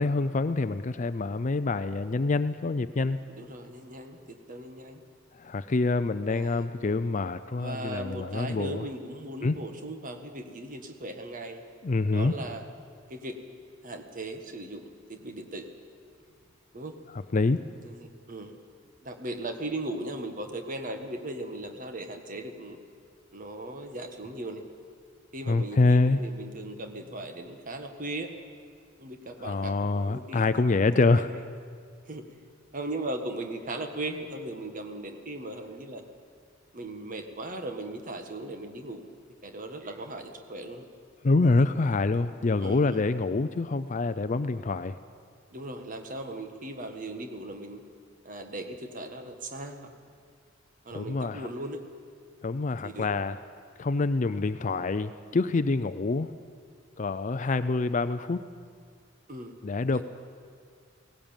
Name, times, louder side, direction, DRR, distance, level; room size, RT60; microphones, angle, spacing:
voice 1, 0.0-3.2 5.3-8.8 9.4-9.6 11.8-12.3 17.3-17.6 25.5-26.2 29.4-31.3 41.2-45.0 50.9-51.5 52.4-53.4 53.8-56.3 57.0-58.4 59.6-60.0, left 3 dB, 40° left, 12 dB, 0.5 m, -26 dB
voice 2, 3.3-5.0 6.3-6.7 7.6-11.6 12.1-12.6 13.1-13.4 13.8-15.7 16.7-17.0 17.8-18.6 19.0-22.8 23.3-24.6 25.3-28.3 29.0-30.7 31.0-31.4 32.1-32.4 32.7-36.0 36.7-39.1 39.4-40.9 42.6-43.0 45.5-47.8 48.2-50.0 50.8-51.8 52.8-53.1 59.3-59.6 59.9-60.0, right 1 dB, 40° right, 6 dB, 1.6 m, -38 dB
18.0 x 18.0 x 9.0 m, 2.1 s
head